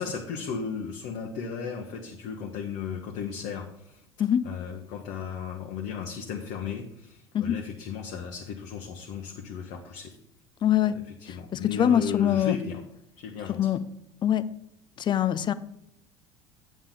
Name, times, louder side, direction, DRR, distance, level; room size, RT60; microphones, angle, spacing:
voice 1, 0.0-4.0 4.4-10.2 11.2-12.8 13.2-13.6, left 6 dB, 55° left, 1 dB, 1.1 m, -35 dB
voice 2, 10.6-11.0 11.3-12.6 13.6-13.8 14.2-14.5 15.0-15.5, left 10 dB, 35° left, 15 dB, 0.5 m, -24 dB
8.8 x 7.2 x 3.8 m, 0.77 s
figure-of-eight pair, 70°, 14 cm